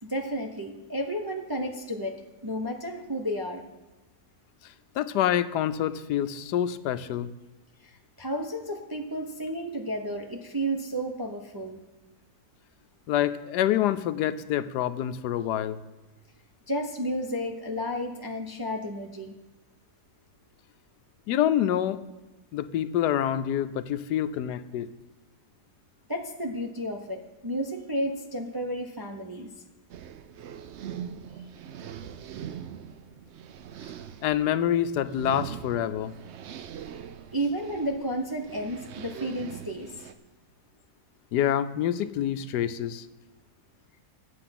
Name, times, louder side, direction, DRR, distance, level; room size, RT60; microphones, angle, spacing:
voice 1, 0.0-3.6 7.8-11.8 16.7-19.3 26.1-29.5 37.3-40.1, equal, 25° right, 2 dB, 0.5 m, -32 dB
voice 2, 4.6-7.3 13.1-15.8 21.3-22.0 22.5-24.9 34.2-36.1 41.3-43.1, left 11 dB, 80° left, 13 dB, 1.1 m, -27 dB
sound 1, 29.9-40.1, right 9 dB, 65° right, 0.6 m, -42 dB
12.0 x 8.5 x 5.9 m, 1.1 s
omnidirectional pair, 1.8 m